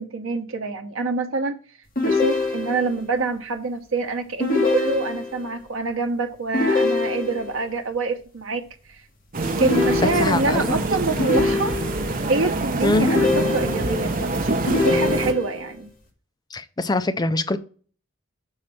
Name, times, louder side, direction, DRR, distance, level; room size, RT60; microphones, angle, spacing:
voice 1, 0.0-1.5 2.0-9.0 9.6-11.8 12.3-15.9, right 3 dB, 85° right, 0.8 m, -26 dB
sound 1, 1.9-3.0 4.4-5.5 6.5-7.6 9.6-10.6 11.2-12.2 13.0-14.0 14.7-15.7, left 3 dB, 45° left, 1.7 m, -24 dB
sound 2, 9.3-15.3, right 2 dB, 45° right, 0.9 m, -25 dB
voice 2, 10.0-10.7 12.8-13.1 16.5-17.6, left 2 dB, 20° left, 0.4 m, -23 dB
6.5 x 4.3 x 5.8 m
head